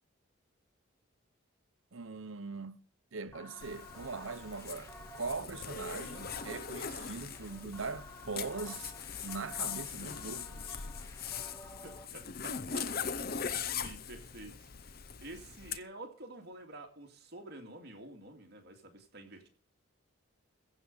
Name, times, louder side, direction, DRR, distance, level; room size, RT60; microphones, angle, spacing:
voice 1, 1.9-2.8 3.1-8.9 9.2-10.9, right 4 dB, 70° right, 0.9 m, -41 dB
sound 1, 3.2-12.0, left 1 dB, 15° left, 1.7 m, -52 dB
Zipper (clothing), 3.6-15.8, left 7 dB, 45° left, 0.7 m, -41 dB
voice 2, 11.8-14.9 15.2-19.5, right 2 dB, 50° right, 2.4 m, -49 dB
15.5 x 5.3 x 8.8 m
head